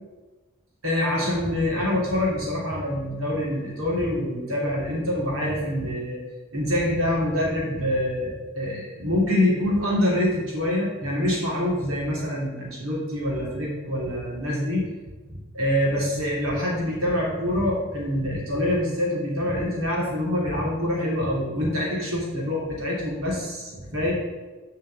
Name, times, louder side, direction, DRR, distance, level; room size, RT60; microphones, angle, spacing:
voice 1, 0.8-6.2 6.5-14.9 15.5-24.1, left 1 dB, 85° right, -5 dB, 3.5 m, -25 dB
7.7 x 5.6 x 7.4 m, 1.2 s
head